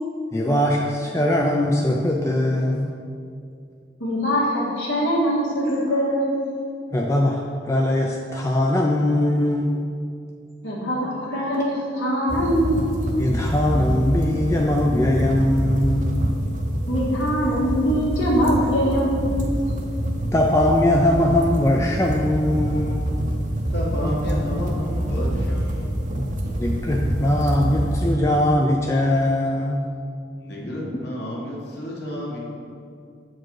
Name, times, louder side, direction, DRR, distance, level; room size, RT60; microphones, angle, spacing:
voice 1, 0.3-2.9 6.9-9.8 13.2-16.3 20.3-23.2 26.6-29.9, left 1 dB, 15° left, 0 dB, 0.3 m, -21 dB
voice 2, 4.0-6.4 10.6-13.0 16.9-19.6, equal, 85° left, -4 dB, 1.8 m, -22 dB
sound 1, 12.3-28.2, right 1 dB, 40° right, 0.7 m, -26 dB
voice 3, 23.7-26.2 30.4-32.4, left 1 dB, 60° left, -3 dB, 1.4 m, -30 dB
7.3 x 4.6 x 4.6 m, 2.4 s
head